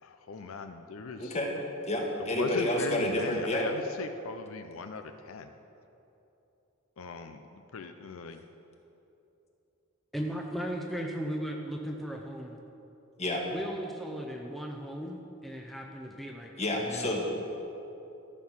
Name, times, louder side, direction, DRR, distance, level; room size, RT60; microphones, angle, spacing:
voice 1, 0.0-1.4 2.2-5.5 7.0-8.4, left 4 dB, 70° left, 7 dB, 0.5 m, -39 dB
voice 2, 1.2-1.5 1.9-3.6 13.2-13.4 16.6-17.3, left 1 dB, 30° left, 0 dB, 1.6 m, -29 dB
voice 3, 10.1-12.6 13.5-17.3, equal, ahead, 1 dB, 0.6 m, -37 dB
13.5 x 6.4 x 7.3 m, 2.9 s
head